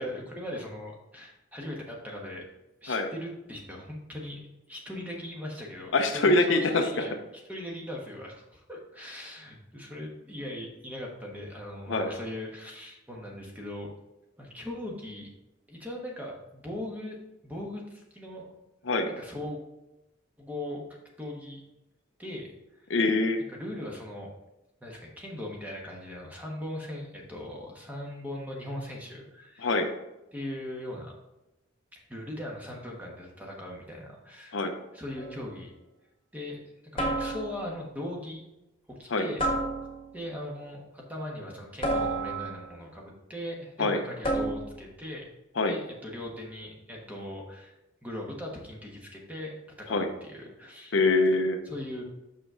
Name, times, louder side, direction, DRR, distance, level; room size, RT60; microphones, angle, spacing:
voice 1, 0.0-2.5 2.8-4.4 4.7-13.9 14.4-15.3 15.7-17.2 17.4-18.5 19.1-19.6 20.4-20.8 21.2-21.6 22.2-22.5 22.8-22.9 23.5-24.3 24.8-29.8 30.3-31.1 31.9-34.6 34.9-35.7 36.3-36.6 36.9-38.5 38.9-39.4 40.1-45.3 45.6-47.7 48.0-51.0 51.6-52.0, left 1 dB, 10° right, -2 dB, 1.2 m, -39 dB
voice 2, 5.9-7.0 11.9-12.1 18.9-19.1 22.9-23.4 29.6-29.9 34.5-34.7 39.1-39.3 43.8-44.0 45.6-45.8 49.9-50.1 50.9-51.6, left 2 dB, 70° left, 6 dB, 0.7 m, -24 dB
sound 1, 35.2-35.5 37.0-37.8 39.4-40.2 41.8-42.8 44.2-44.8, right 1 dB, 25° left, 1.4 m, -30 dB
6.3 x 6.0 x 3.7 m, 0.94 s
head